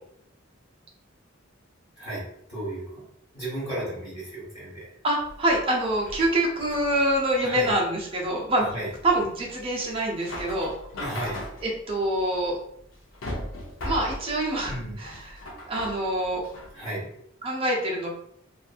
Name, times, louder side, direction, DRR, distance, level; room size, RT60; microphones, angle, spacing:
voice 1, 2.0-2.8 3.3-4.9 7.4-7.7 8.6-8.9 10.9-11.4 14.7-15.1 16.7-17.1, right 1 dB, 25° left, -11 dB, 1.4 m, -34 dB
voice 2, 5.0-8.8 9.0-10.7 11.6-12.6 13.8-15.4 15.7-16.4 17.4-18.1, right 1 dB, 30° right, -3 dB, 0.7 m, -25 dB
sound 1, 5.2-16.8, left 1 dB, 75° left, 0.6 m, -39 dB
2.6 x 2.5 x 2.4 m, 0.71 s
head